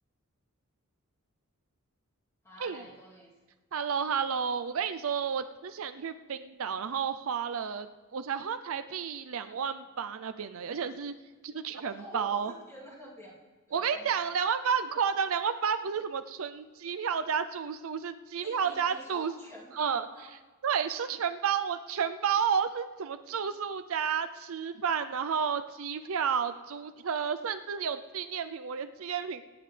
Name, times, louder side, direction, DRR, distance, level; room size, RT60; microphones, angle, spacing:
voice 1, 2.4-3.3 11.8-13.3 13.7-14.3 18.4-20.3, equal, 15° left, -6 dB, 3.0 m, -48 dB
voice 2, 3.7-7.9 8.1-11.1 11.4-12.5 13.7-19.3 19.7-20.1 20.6-29.4, right 7 dB, 65° right, 10 dB, 0.5 m, -31 dB
24.5 x 9.5 x 3.4 m, 1.3 s
head